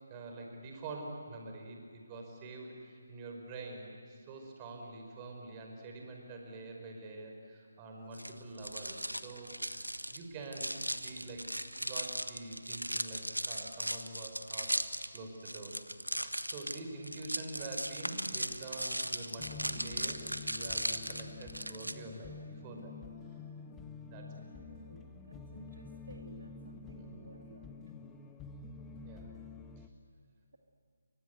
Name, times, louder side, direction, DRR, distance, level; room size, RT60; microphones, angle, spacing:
voice 1, 0.1-11.5 11.8-14.8 15.1-15.7 16.2-22.9 24.0-24.3 26.9-27.2 29.0-29.3 29.8-29.9, right 2 dB, 20° right, 2 dB, 5.2 m, -46 dB
sound 1, 8.1-21.9, right 1 dB, 90° right, 1.4 m, -38 dB
sound 2, 19.4-29.9, left 4 dB, 10° left, 1.2 m, -48 dB
voice 2, 24.5-27.8, right 2 dB, 70° right, 3 dB, 2.4 m, -54 dB
29.5 x 24.5 x 8.1 m, 2.1 s
figure-of-eight pair, 145°, 0 cm